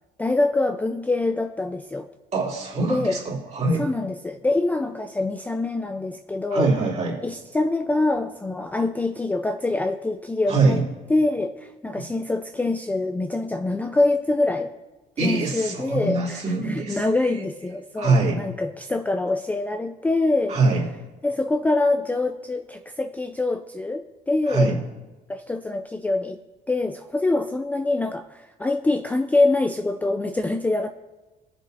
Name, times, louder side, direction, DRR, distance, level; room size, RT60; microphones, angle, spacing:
voice 1, 0.2-2.1 2.9-3.2 3.8-6.7 7.2-10.8 11.1-14.7 15.2-20.6 21.2-24.7 25.3-26.4 26.7-30.9, left 2 dB, 10° left, 6 dB, 0.4 m, -25 dB
voice 2, 2.3-3.8 6.5-7.2 10.5-10.8 15.2-17.0 18.0-18.4 20.5-20.8 24.5-24.8, right 3 dB, 40° right, -3 dB, 2.9 m, -23 dB
17.5 x 7.1 x 2.6 m, 1.2 s
cardioid pair, 110°, 17 cm